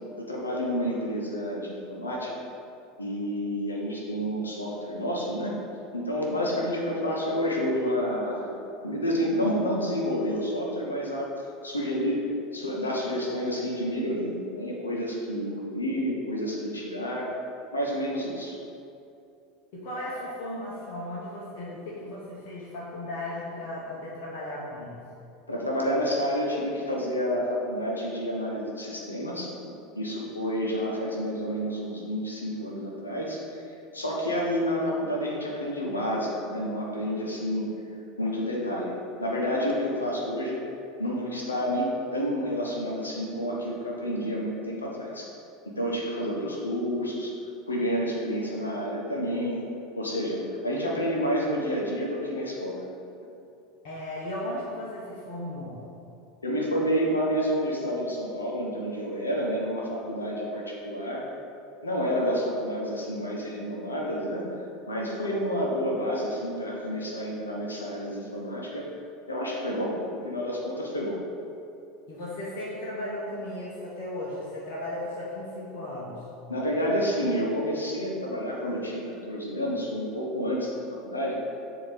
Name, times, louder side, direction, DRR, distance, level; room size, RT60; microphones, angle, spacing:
voice 1, 0.2-2.3 3.0-5.6 5.9-8.5 8.8-12.2 12.5-17.3 17.7-18.6 25.5-33.6 33.9-37.7 38.2-40.7 41.0-45.3 45.6-47.3 47.7-49.6 49.9-52.9 56.4-61.2 61.8-64.4 64.9-68.9 69.3-71.2 76.5-80.7 81.0-81.4, equal, 85° left, -3 dB, 1.0 m, -29 dB
voice 2, 19.7-25.0 53.8-55.8 72.1-76.3, left 1 dB, 55° left, -6 dB, 1.2 m, -36 dB
7.1 x 3.0 x 5.2 m, 2.7 s
figure-of-eight pair, 80°, 0 cm